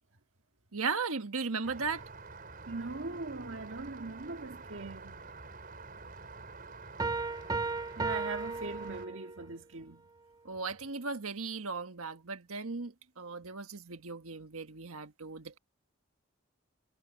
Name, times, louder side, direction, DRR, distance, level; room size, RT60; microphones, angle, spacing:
voice 1, 0.7-2.0 10.4-15.6, right 4 dB, 80° right, 1.5 m, -37 dB
Rain, 1.6-9.1, right 3 dB, 40° right, 5.4 m, -48 dB
voice 2, 2.7-5.2 8.0-10.0, right 3 dB, 60° right, 1.9 m, -40 dB
sound 1, 7.0-9.5, right 3 dB, 15° right, 0.4 m, -35 dB
head